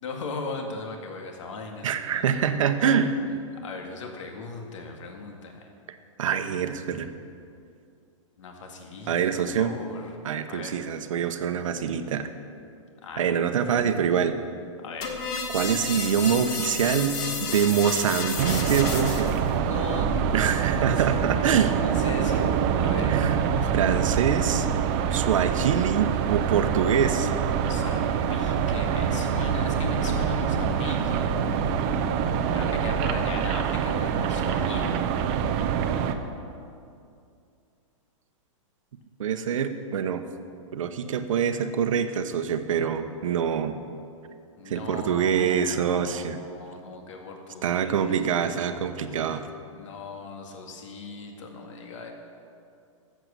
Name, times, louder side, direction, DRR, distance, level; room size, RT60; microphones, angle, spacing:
voice 1, 0.0-2.4 3.2-5.7 8.4-9.1 9.6-10.2 10.5-10.8 13.0-13.3 13.7-13.8 14.8-15.1 19.5-23.1 27.4-31.4 32.5-35.0 44.6-48.5 49.7-52.1, left 3 dB, 65° left, 3 dB, 2.0 m, -39 dB
voice 2, 1.8-3.2 6.2-7.1 9.1-9.8 10.2-12.3 13.2-14.4 15.5-19.4 20.3-21.8 23.1-24.7 25.1-27.3 39.2-40.3 40.7-43.8 44.7-46.4 47.6-49.5, right 7 dB, 75° right, 9 dB, 1.0 m, -25 dB
sound 1, 15.0-19.4, left 4 dB, 35° left, 1.6 m, -31 dB
sound 2, 18.4-36.1, right 7 dB, 25° right, 0.6 m, -25 dB
14.0 x 7.9 x 6.9 m, 2.5 s
hypercardioid pair, 165°, 17 cm